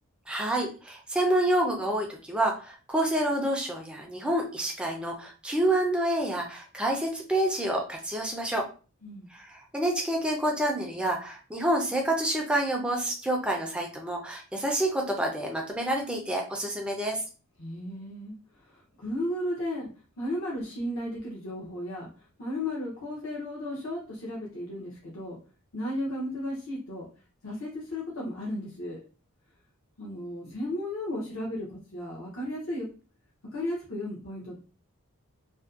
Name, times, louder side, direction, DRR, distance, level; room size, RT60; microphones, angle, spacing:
voice 1, 0.3-8.7 9.3-17.2, right 1 dB, 5° right, 0 dB, 0.4 m, -28 dB
voice 2, 17.6-19.9 20.2-25.4 25.7-27.1 27.4-29.0 30.0-32.9 33.4-34.6, left 1 dB, 60° left, -4 dB, 0.6 m, -34 dB
2.5 x 2.2 x 2.3 m, 0.36 s
head